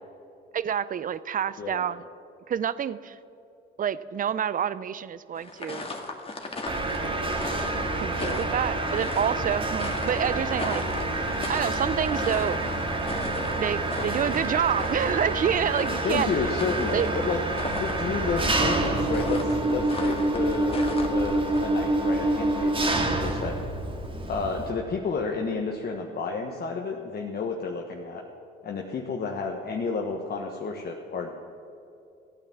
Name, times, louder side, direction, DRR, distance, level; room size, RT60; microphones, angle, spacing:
voice 1, 0.5-2.0 2.5-3.2 3.8-5.9 8.0-10.8 11.5-12.6 13.6-16.4 16.9-17.1, right 8 dB, 45° right, 17 dB, 0.6 m, -28 dB
Walking On Gravel, 5.4-21.6, left 3 dB, 30° left, 2.0 m, -38 dB
Mechanisms, 6.7-24.7, right 2 dB, 25° right, 2.2 m, -27 dB
voice 2, 16.0-17.4 17.8-23.6 24.3-28.2 28.6-31.3, left 4 dB, 50° left, 1 dB, 1.4 m, -31 dB
15.0 x 9.2 x 7.4 m, 2.6 s
supercardioid pair, 75°, 20 cm